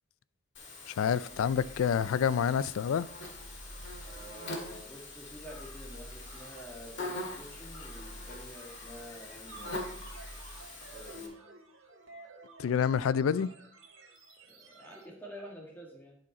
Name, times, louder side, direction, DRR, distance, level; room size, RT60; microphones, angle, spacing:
Buzz, 0.5-11.3, left 2 dB, 55° left, 1.8 m, -44 dB
voice 1, 0.9-3.1 12.6-13.5, left 7 dB, 80° left, 0.3 m, -28 dB
sound 1, 2.7-11.1, right 1 dB, 20° right, 1.0 m, -51 dB
voice 2, 4.0-9.9 10.9-11.4 14.4-16.2, equal, 10° left, 1.8 m, -49 dB
sound 2, 9.5-15.1, right 2 dB, 70° right, 1.5 m, -51 dB
11.0 x 5.1 x 4.2 m
head